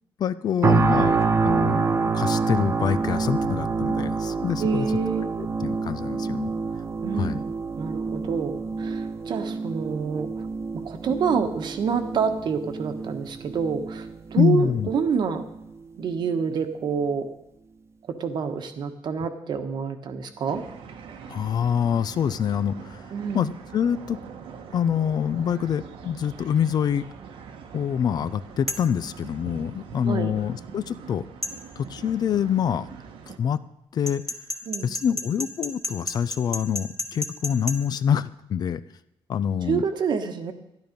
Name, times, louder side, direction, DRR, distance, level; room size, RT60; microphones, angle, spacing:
voice 1, 0.2-1.8 2.1-4.9 5.4-6.5 7.1-7.4 14.4-14.9 21.3-23.0 23.3-24.2 24.7-27.0 27.7-31.2 31.8-32.9 33.4-33.6 33.9-34.2 34.8-38.8 39.3-39.8, left 8 dB, 50° left, 15 dB, 0.5 m, -25 dB
sound 1, 0.6-15.6 16.1-16.3, right 4 dB, 30° right, 0.7 m, -27 dB
voice 2, 4.6-5.3 7.0-10.3 10.8-14.1 14.3-15.4 16.0-17.3 18.1-20.6 23.1-23.5 30.0-30.3 34.7-34.9 39.7-40.5, right 6 dB, 55° right, 7 dB, 1.3 m, -27 dB
sound 2, 20.5-33.4, right 6 dB, 80° right, 1.3 m, -43 dB
sound 3, 28.7-28.9 31.4-31.6 34.1-37.8, left 1 dB, 5° left, 1.3 m, -31 dB
12.5 x 11.5 x 5.2 m, 0.86 s
cardioid pair, 145°, 9 cm